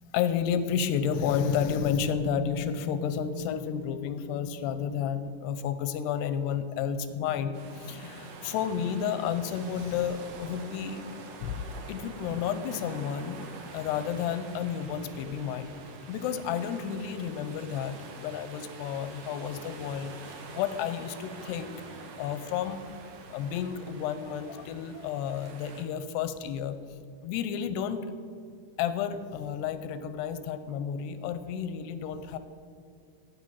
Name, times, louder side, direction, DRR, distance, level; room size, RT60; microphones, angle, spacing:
voice 1, 0.1-11.0 11.4-11.6 11.9-15.8 16.1-22.8 23.3-26.8 27.2-28.1 28.8-32.4, left 8 dB, 85° left, 11 dB, 2.7 m, -31 dB
sound 1, 7.5-25.8, right 3 dB, 75° right, 1.5 m, -46 dB
15.0 x 9.5 x 5.6 m, 2.5 s
omnidirectional pair, 4.9 m